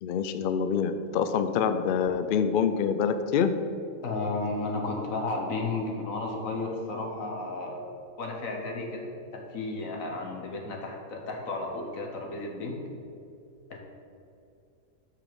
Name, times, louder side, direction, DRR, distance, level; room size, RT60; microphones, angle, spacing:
voice 1, 0.0-3.5, left 7 dB, 65° left, 9 dB, 0.5 m, -26 dB
voice 2, 4.0-7.8 8.2-12.8 13.7-13.8, left 2 dB, 80° left, 1 dB, 1.7 m, -33 dB
6.0 x 5.8 x 7.0 m, 2.5 s
omnidirectional pair, 1.4 m